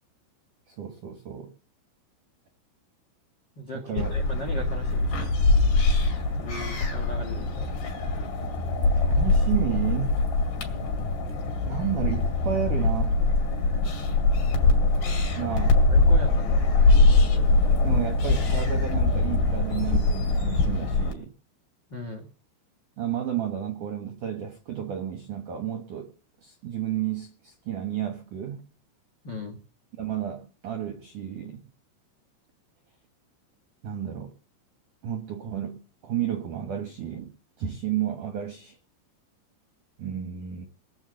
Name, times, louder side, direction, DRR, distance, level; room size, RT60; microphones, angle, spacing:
voice 1, 0.7-1.5 3.9-4.1 9.0-10.2 11.7-13.2 15.4-15.8 17.8-21.3 23.0-26.1 26.4-28.7 30.0-31.6 33.8-34.3 35.0-37.3 37.6-38.8 40.0-40.7, right 10 dB, 80° right, 1.8 m, -32 dB
voice 2, 3.5-5.2 6.4-7.7 15.9-16.7 21.9-22.3 29.2-29.6, left 1 dB, 80° left, 1.0 m, -38 dB
sound 1, 4.0-21.1, left 3 dB, 60° left, 4.2 m, -23 dB
20.0 x 7.0 x 7.7 m
omnidirectional pair, 5.7 m